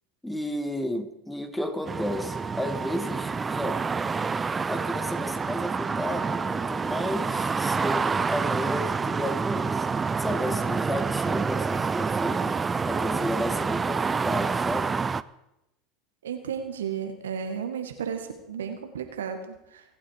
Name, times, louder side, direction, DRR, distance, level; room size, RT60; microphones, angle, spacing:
voice 1, 0.2-3.8 4.7-9.9 10.2-12.6 12.8-15.0, left 1 dB, 5° left, 9 dB, 1.8 m, -33 dB
sound 1, 1.9-15.2, right 5 dB, 20° right, 0.5 m, -27 dB
voice 2, 16.2-19.8, right 7 dB, 85° right, 6 dB, 1.8 m, -33 dB
26.0 x 8.6 x 4.8 m, 0.87 s
hypercardioid pair, 90°, 0 cm